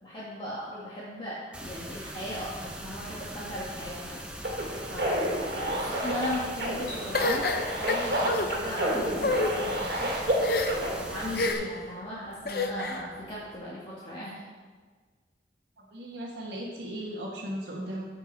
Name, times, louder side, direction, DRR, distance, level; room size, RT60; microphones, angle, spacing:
voice 1, 0.0-4.2 4.9-7.5 7.8-10.1 10.9-14.3, equal, 30° left, -8 dB, 1.9 m, -37 dB
sound 1, 1.5-11.5, right 1 dB, 5° right, 0.9 m, -41 dB
sound 2, 4.4-10.9, right 1 dB, 60° right, 2.2 m, -30 dB
sound 3, 7.1-8.5 9.1-9.5 10.4-10.9 11.3-11.8 12.5-13.0, left 2 dB, 55° left, 0.8 m, -28 dB
voice 2, 15.8-18.1, right 1 dB, 85° right, -7 dB, 1.6 m, -37 dB
15.5 x 6.1 x 4.4 m, 1.5 s
head